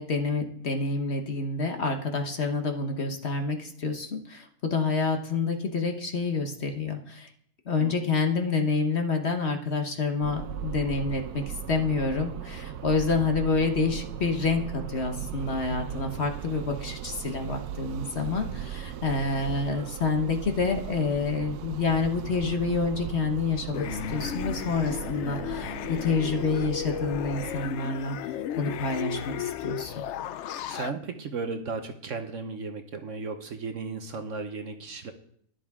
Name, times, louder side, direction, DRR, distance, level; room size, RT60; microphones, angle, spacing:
voice 1, 0.0-7.3 7.7-28.3 28.6-29.9, left 4 dB, 45° left, 4 dB, 1.3 m, -28 dB
sound 1, 10.2-27.7, right 10 dB, 85° right, 1.2 m, -38 dB
sound 2, 23.7-30.9, left 11 dB, 65° left, 0.7 m, -34 dB
voice 2, 30.7-35.1, right 4 dB, 55° right, 7 dB, 1.1 m, -35 dB
12.5 x 11.0 x 3.6 m, 0.65 s
omnidirectional pair, 1.6 m